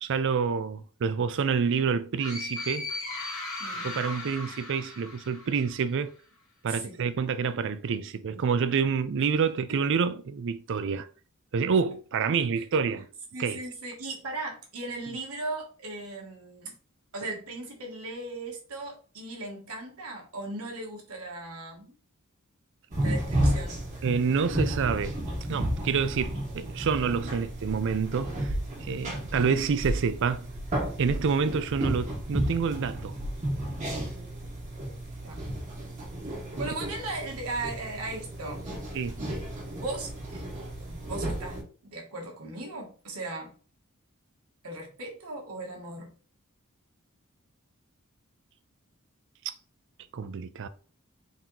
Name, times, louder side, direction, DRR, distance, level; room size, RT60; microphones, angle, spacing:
voice 1, 0.0-2.9 3.8-6.1 6.6-11.1 11.5-13.1 13.4-13.6 24.0-25.2 25.5-28.5 28.8-30.5 31.0-33.1 38.9-39.3 49.5-49.6 50.1-50.7, right 6 dB, 60° right, 0.4 m, -28 dB
sound 1, 2.2-5.9, left 2 dB, 90° left, 1.6 m, -37 dB
voice 2, 3.6-3.9 6.7-7.1 9.2-9.3 12.6-13.0 13.3-16.8 17.1-22.0 23.0-23.8 35.2-35.5 36.6-38.7 39.6-40.4 40.8-43.5 44.6-46.1, right 2 dB, 90° right, 1.4 m, -38 dB
sound 2, 22.9-41.6, right 1 dB, 35° right, 1.7 m, -32 dB
3.9 x 2.9 x 3.8 m
head